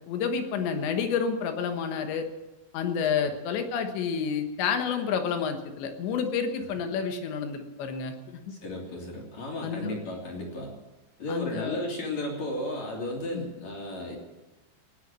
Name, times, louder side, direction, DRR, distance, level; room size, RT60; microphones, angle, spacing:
voice 1, 0.1-2.3 2.7-8.4 9.6-9.9 11.3-11.8 13.3-13.5, left 6 dB, 75° left, 6 dB, 3.4 m, -29 dB
voice 2, 8.5-10.7 11.2-14.2, left 1 dB, 40° left, -1 dB, 3.8 m, -34 dB
19.0 x 9.3 x 7.5 m, 1.1 s
omnidirectional pair, 5.5 m